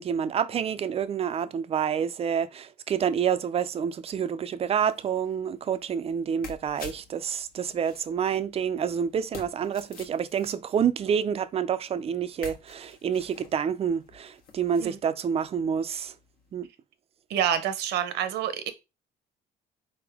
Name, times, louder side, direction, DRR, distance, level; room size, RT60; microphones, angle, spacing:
voice 1, 0.0-16.1 16.5-16.7, right 8 dB, 35° right, 0.4 m, -28 dB
sound 1, 4.6-15.0 15.3-16.7, left 5 dB, 65° left, 1.3 m, -50 dB
voice 2, 17.3-18.7, right 9 dB, 75° right, 0.8 m, -27 dB
4.2 x 3.4 x 3.5 m
cardioid pair, 110°, 17 cm